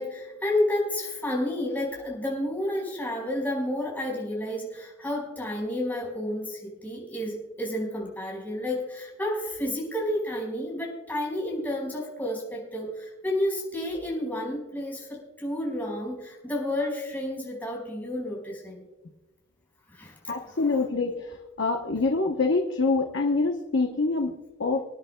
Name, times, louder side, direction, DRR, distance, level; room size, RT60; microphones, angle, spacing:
voice 1, 0.0-18.8 19.9-20.1 20.5-20.6, left 1 dB, 10° left, -3 dB, 4.7 m, -31 dB
voice 2, 20.3-21.3 21.6-24.3 24.6-24.8, left 3 dB, 65° left, 3 dB, 0.9 m, -25 dB
27.0 x 10.0 x 2.2 m, 1.1 s
head